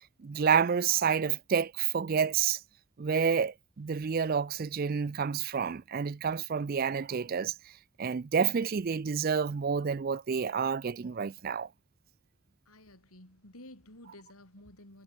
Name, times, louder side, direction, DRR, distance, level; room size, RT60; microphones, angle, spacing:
voice 1, 0.2-2.6 3.0-7.5 8.0-11.7, right 6 dB, 40° right, 0.4 m, -29 dB
voice 2, 12.7-15.0, left 1 dB, 80° left, 7.7 m, -52 dB
head